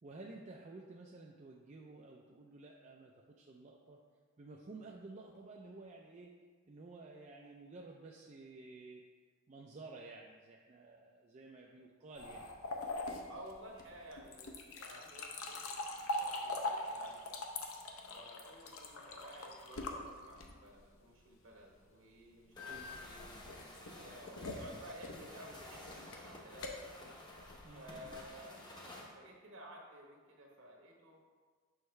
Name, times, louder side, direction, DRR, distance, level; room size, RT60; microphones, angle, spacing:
voice 1, 0.0-4.0 4.4-6.4 6.6-9.0 9.5-12.5 22.6-22.9 25.4-25.6 27.6-28.1, right 3 dB, 30° right, -1 dB, 0.4 m, -53 dB
sound 1, 12.2-20.8 22.6-28.3, left 2 dB, 70° left, 0.7 m, -43 dB
voice 2, 13.3-17.3 18.0-26.7 27.7-31.2, equal, 60° right, -1 dB, 1.2 m, -54 dB
sound 2, 22.5-29.1, left 1 dB, 20° left, 0.7 m, -53 dB
6.3 x 5.6 x 3.2 m, 1.5 s
head